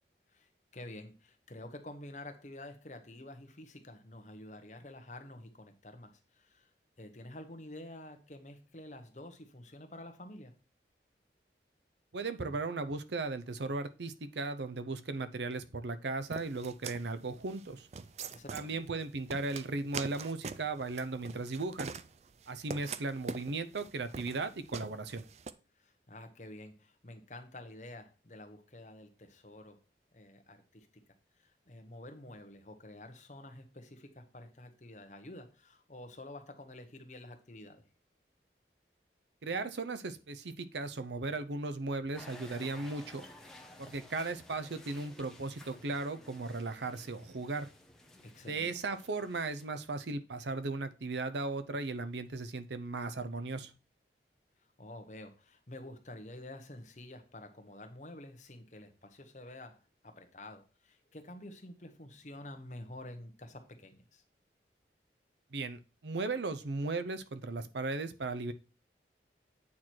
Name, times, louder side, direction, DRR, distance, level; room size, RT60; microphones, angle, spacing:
voice 1, 0.3-6.7 7.0-10.5 18.3-18.8 25.7-29.8 30.1-30.9 31.4-37.8 48.2-48.7 54.8-64.2, left 1 dB, 40° left, 7 dB, 1.0 m, -49 dB
voice 2, 12.1-17.9 18.5-21.9 22.5-25.2 39.4-43.3 43.8-47.7 48.5-53.7 65.5-68.5, right 3 dB, 85° right, 12 dB, 0.7 m, -37 dB
sound 1, 16.3-25.5, right 5 dB, 40° right, 0.4 m, -43 dB
sound 2, 42.1-49.7, left 1 dB, 5° left, 0.8 m, -54 dB
8.5 x 4.6 x 4.4 m, 0.33 s
head